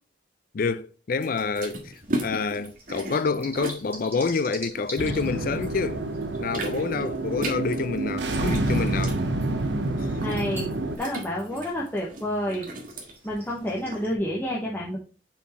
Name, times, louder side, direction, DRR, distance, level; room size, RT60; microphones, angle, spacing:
voice 1, 0.5-1.9 2.2-6.0 6.4-9.2, left 4 dB, 55° left, 0.4 m, -27 dB
sound 1, 1.2-14.1, right 1 dB, 15° right, 2.2 m, -47 dB
sound 2, 1.2-5.7 6.1-14.1, right 1 dB, 50° right, 1.5 m, -37 dB
sound 3, 5.0-11.0, right 2 dB, 85° right, 0.8 m, -28 dB
voice 2, 10.2-10.7 11.0-12.7 13.2-15.0, equal, 10° left, 1.0 m, -29 dB
5.6 x 4.5 x 4.2 m
head